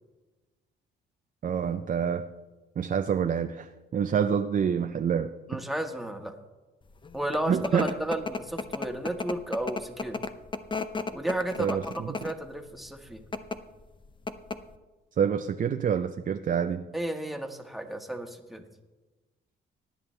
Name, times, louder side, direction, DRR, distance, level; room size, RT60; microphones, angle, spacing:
voice 1, 1.4-2.3 2.8-5.6 7.5-8.0 11.6-12.1 15.2-16.8, right 7 dB, 45° right, 7 dB, 0.6 m, -27 dB
voice 2, 5.5-6.4 7.1-10.2 11.1-13.2 16.9-18.6, right 1 dB, ahead, 4 dB, 1.5 m, -33 dB
sound 1, 7.0-12.5 13.2-13.6 13.9-14.0 14.3-14.8, left 4 dB, 25° left, 0.7 m, -34 dB
18.5 x 10.5 x 3.3 m, 1.2 s
cardioid pair, 90°, 20 cm